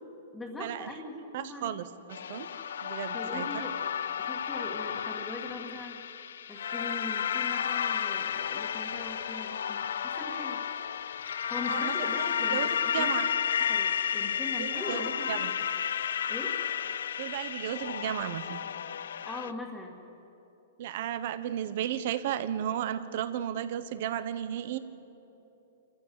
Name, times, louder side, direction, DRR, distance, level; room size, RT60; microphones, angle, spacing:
voice 1, 0.3-1.7 3.1-3.8 4.2-6.0 6.5-10.7 11.5-13.2 13.6-15.5 16.3-16.6 19.2-20.0, left 2 dB, 5° left, -4 dB, 2.0 m, -41 dB
voice 2, 1.3-2.5 2.8-3.7 11.7-12.7 12.9-13.3 14.6-15.0 15.3-15.5 17.2-18.6 20.8-24.8, right 10 dB, 55° right, 12 dB, 1.2 m, -34 dB
sound 1, 2.1-19.5, left 8 dB, 80° left, 0.6 m, -32 dB
27.0 x 14.5 x 7.7 m, 3.0 s
hypercardioid pair, 150°, 0 cm